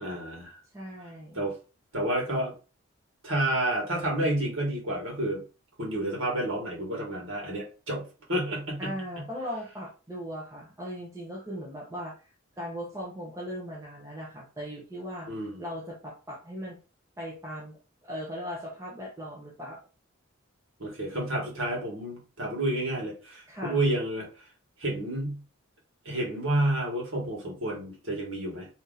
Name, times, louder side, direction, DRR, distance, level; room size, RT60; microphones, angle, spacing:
voice 1, 0.0-0.6 1.3-1.5 1.9-2.5 3.2-5.4 5.8-8.0 8.3-8.9 15.3-15.6 20.8-24.3 24.8-25.4 26.0-28.7, right 1 dB, 65° right, -2 dB, 1.5 m, -30 dB
voice 2, 0.7-1.4 8.8-12.2 12.6-15.3 15.6-16.8 17.2-19.8 23.5-23.8, equal, 15° right, -4 dB, 0.8 m, -38 dB
2.8 x 2.7 x 3.9 m, 0.34 s
head